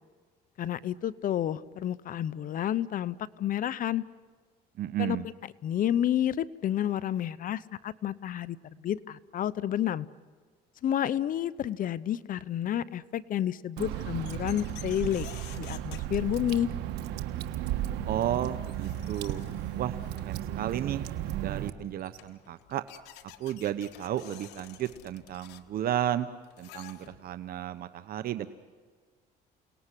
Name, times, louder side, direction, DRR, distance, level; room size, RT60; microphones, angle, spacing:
voice 1, 0.6-4.0 5.0-5.2 5.6-10.1 10.8-15.3 15.6-16.7, left 11 dB, 55° left, 17 dB, 0.9 m, -30 dB
voice 2, 4.8-5.3 18.0-19.5 19.7-21.0 21.4-22.8 23.4-26.3 26.6-28.5, right 11 dB, 60° right, 11 dB, 1.1 m, -33 dB
sound 1, 13.8-16.9 18.2-18.3 18.6-20.4 21.6-21.7 22.0-27.5, left 12 dB, 90° left, 1.6 m, -51 dB
Water / Drip, 13.8-21.7, right 12 dB, 85° right, 1.5 m, -34 dB
29.0 x 19.0 x 10.0 m, 1.5 s
cardioid pair, 110°, 17 cm